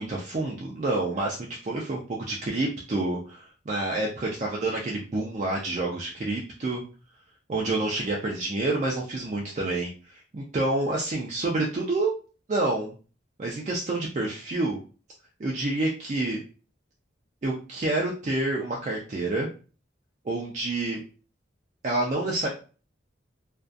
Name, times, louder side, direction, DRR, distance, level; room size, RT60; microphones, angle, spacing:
voice 1, 0.0-1.4 1.6-6.8 7.5-12.2 12.5-12.9 13.4-14.8 15.4-16.4 17.4-19.5 20.2-21.0 21.8-22.5, right 2 dB, 40° right, -2 dB, 0.4 m, -28 dB
2.5 x 2.3 x 2.3 m, 0.36 s
head